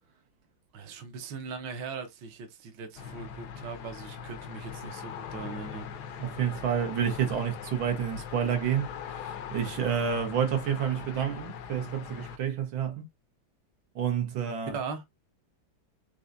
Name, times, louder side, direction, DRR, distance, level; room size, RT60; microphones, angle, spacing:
voice 1, 0.7-6.2 14.5-15.0, right 5 dB, 70° right, 1.6 m, -40 dB
sound 1, 3.0-12.4, left 7 dB, 70° left, 1.1 m, -41 dB
voice 2, 6.2-13.1 14.0-14.8, right 8 dB, 85° right, 1.9 m, -29 dB
4.7 x 3.9 x 2.6 m
omnidirectional pair, 2.1 m